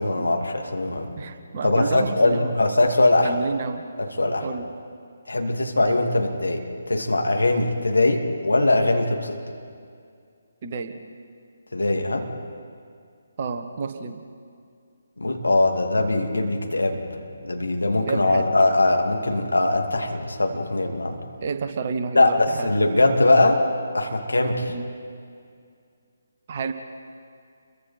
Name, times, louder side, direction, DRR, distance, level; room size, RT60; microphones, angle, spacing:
voice 1, 0.0-1.1 1.6-3.3 4.0-4.5 5.3-9.4 11.7-12.3 15.2-17.0 17.4-21.2 22.1-23.6 23.9-24.7, left 2 dB, 70° left, 3 dB, 2.6 m, -21 dB
voice 2, 1.1-2.6 3.2-3.8 4.4-4.7 10.6-11.0 13.4-14.2 18.1-18.5 21.4-22.7 24.7-24.9 26.5-26.7, right 5 dB, 35° right, 6 dB, 1.4 m, -30 dB
30.0 x 23.0 x 4.4 m, 2.3 s
figure-of-eight pair, 145°, 0 cm